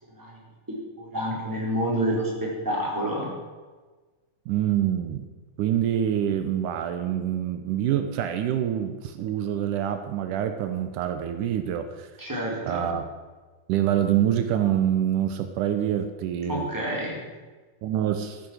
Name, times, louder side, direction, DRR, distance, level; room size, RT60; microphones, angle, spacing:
voice 1, 0.7-3.3 12.2-12.9 16.5-17.2, equal, 5° right, -4 dB, 4.1 m, -28 dB
voice 2, 4.5-5.3 5.6-12.1 12.7-13.0 13.7-16.7 17.8-18.4, right 10 dB, 80° right, 8 dB, 2.4 m, -26 dB
14.5 x 10.5 x 6.5 m, 1.3 s
omnidirectional pair, 3.7 m